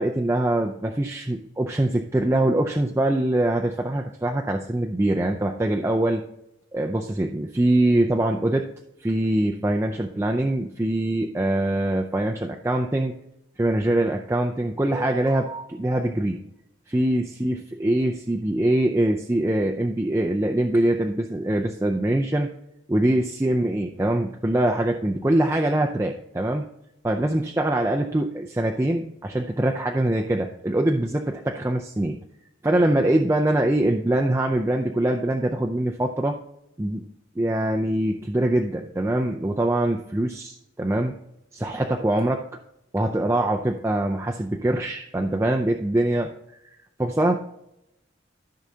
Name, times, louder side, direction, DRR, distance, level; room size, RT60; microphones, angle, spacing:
voice 1, 0.0-6.2 6.7-8.7 9.0-13.1 13.6-16.4 16.9-22.5 22.9-26.7 27.0-32.2 32.6-36.4 36.8-37.0 37.4-41.1 41.5-42.4 42.9-46.3 47.0-47.3, right 1 dB, 15° right, 2 dB, 0.4 m, -23 dB
14.0 x 6.2 x 2.8 m, 0.83 s
head